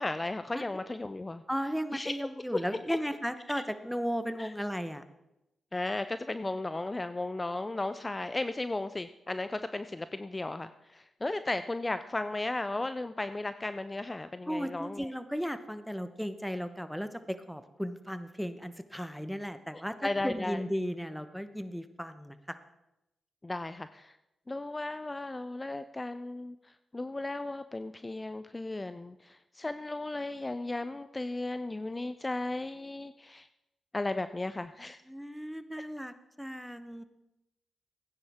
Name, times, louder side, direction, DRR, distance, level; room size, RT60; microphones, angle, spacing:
voice 1, 0.0-1.4 1.9-2.1 2.5-2.6 2.9-3.0 3.5-3.6 4.4-4.5 5.7-15.1 20.0-20.6 23.4-24.2 24.5-26.6 26.9-33.5 33.9-35.0, left 2 dB, 25° left, 11 dB, 0.5 m, -35 dB
voice 2, 1.5-5.0 14.5-22.6 34.8-37.0, equal, ahead, 11 dB, 1.0 m, -35 dB
16.0 x 9.6 x 3.6 m, 0.92 s
supercardioid pair, 40°, 0 cm